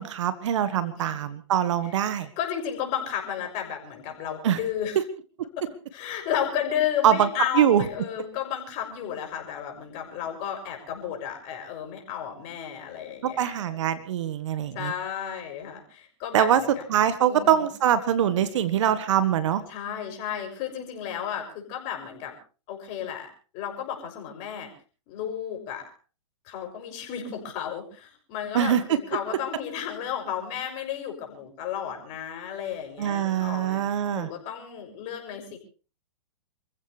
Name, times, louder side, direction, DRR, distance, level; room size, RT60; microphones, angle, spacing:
voice 1, 0.0-2.3 4.4-4.6 4.9-5.0 7.0-7.3 7.5-7.8 13.2-14.9 16.3-16.6 16.9-19.6 28.5-29.0 33.0-34.3, right 10 dB, 65° right, 13 dB, 1.6 m, -23 dB
voice 2, 2.4-5.0 5.6-5.7 5.9-13.5 14.7-16.8 17.3-17.7 19.7-22.3 22.7-23.3 23.5-24.7 25.1-25.8 26.4-35.6, left 9 dB, 40° left, 3 dB, 6.5 m, -33 dB
28.0 x 15.0 x 3.4 m, 0.35 s
hypercardioid pair, 125°, 17 cm